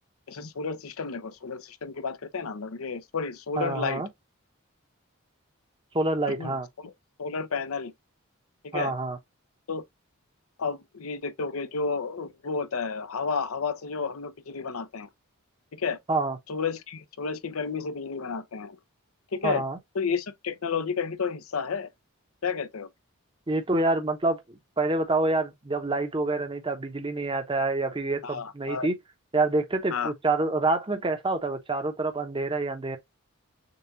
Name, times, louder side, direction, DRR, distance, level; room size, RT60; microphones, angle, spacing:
voice 1, 0.3-4.0 6.3-6.5 6.8-6.9 7.2-7.9 8.7-8.9 9.7-9.8 10.6-15.1 15.7-16.0 16.5-18.8 19.3-19.6 19.9-21.9 22.4-22.9 28.2-28.9 29.9-30.1, left 5 dB, 80° left, 0.7 m, -31 dB
voice 2, 3.6-4.1 5.9-6.7 8.7-9.2 16.1-16.4 19.4-19.8 23.5-24.4 24.8-28.9 29.3-33.0, right 2 dB, 25° right, 0.7 m, -27 dB
6.8 x 2.3 x 2.8 m
head